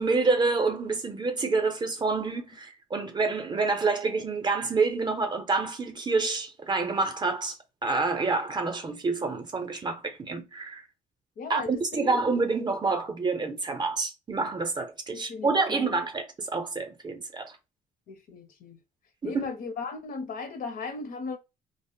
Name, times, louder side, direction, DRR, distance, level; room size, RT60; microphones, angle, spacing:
voice 1, 0.0-7.6 7.8-10.8 11.5-17.6 19.2-19.5, right 3 dB, 25° right, 0.6 m, -28 dB
voice 2, 11.4-12.2 15.1-15.9 18.1-18.8 19.2-21.4, left 4 dB, 55° left, 0.7 m, -37 dB
2.0 x 2.0 x 3.5 m
cardioid pair, 110°, 17 cm